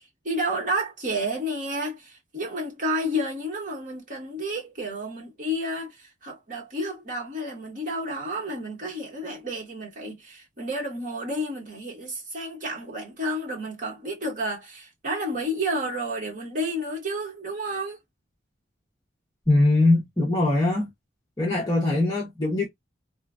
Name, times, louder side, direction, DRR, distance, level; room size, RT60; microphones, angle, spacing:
voice 1, 0.0-18.0, equal, 40° right, 1.2 m, -31 dB
voice 2, 19.5-20.9 21.4-22.7, left 2 dB, 20° left, 0.7 m, -21 dB
3.0 x 2.2 x 2.4 m
head